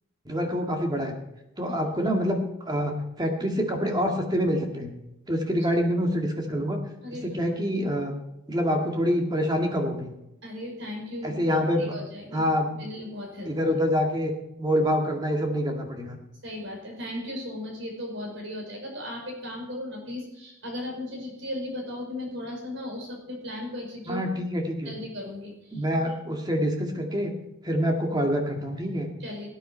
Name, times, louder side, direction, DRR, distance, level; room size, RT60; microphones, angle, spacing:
voice 1, 0.3-1.2 1.6-4.9 5.3-6.8 7.2-8.1 8.5-10.1 11.2-11.9 12.3-12.7 13.5-14.3 14.6-16.2 24.1-24.9 25.7-27.3 27.6-29.1, equal, 20° right, 3 dB, 2.0 m, -26 dB
voice 2, 7.0-7.4 10.4-12.4 12.7-13.5 16.4-24.2 24.8-26.1 29.2-29.5, left 1 dB, 65° right, -1 dB, 5.3 m, -36 dB
18.0 x 9.4 x 4.5 m, 0.87 s
head